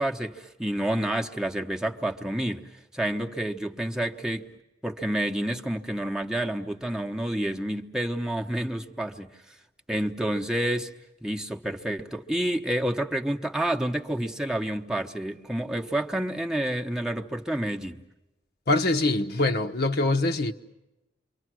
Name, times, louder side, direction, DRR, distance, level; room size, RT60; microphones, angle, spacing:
voice 1, 0.0-4.5 4.8-9.3 9.9-10.9 11.2-18.0, right 1 dB, 5° right, 1.0 m, -29 dB
voice 2, 18.7-20.5, left 2 dB, 60° left, 1.0 m, -24 dB
29.0 x 25.0 x 6.2 m
head